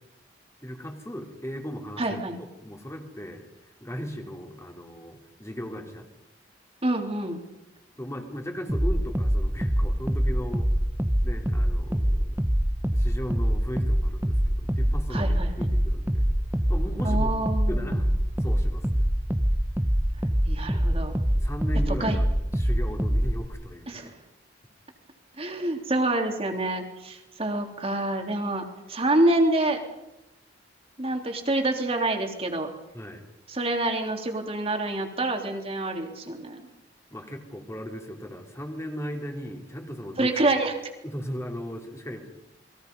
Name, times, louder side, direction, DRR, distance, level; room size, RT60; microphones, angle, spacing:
voice 1, 0.6-3.4 3.8-6.1 8.0-10.7 11.2-12.4 12.9-16.4 16.7-17.3 17.7-18.1 18.4-19.1 20.7-21.1 21.3-22.3 22.6-24.0 32.9-33.3 37.1-40.6 41.0-42.3, equal, 15° left, 2 dB, 3.4 m, -37 dB
voice 2, 2.0-2.4 6.8-7.4 15.1-15.7 17.0-18.0 20.5-21.1 22.0-22.2 23.9-24.2 25.4-29.8 31.0-32.7 33.5-36.7 40.2-40.8, right 2 dB, 30° right, 3 dB, 3.3 m, -27 dB
sound 1, 8.7-23.5, equal, 10° right, 1.0 m, -25 dB
29.0 x 22.0 x 5.5 m, 0.91 s
head